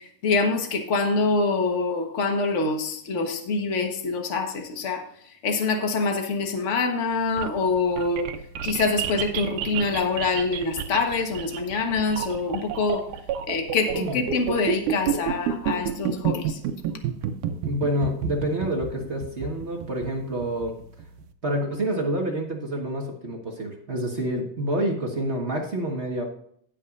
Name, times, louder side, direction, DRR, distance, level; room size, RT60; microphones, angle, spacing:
voice 1, 0.2-5.0 5.4-8.3 8.6-13.0 13.5-16.4, left 4 dB, 55° left, 4 dB, 0.8 m, -25 dB
sound 1, 7.1-21.2, right 9 dB, 90° right, 2.3 m, -30 dB
voice 2, 13.9-14.2 17.6-20.7 21.4-26.2, right 1 dB, 40° right, 0 dB, 0.9 m, -28 dB
17.5 x 6.5 x 2.6 m, 0.66 s
omnidirectional pair, 3.5 m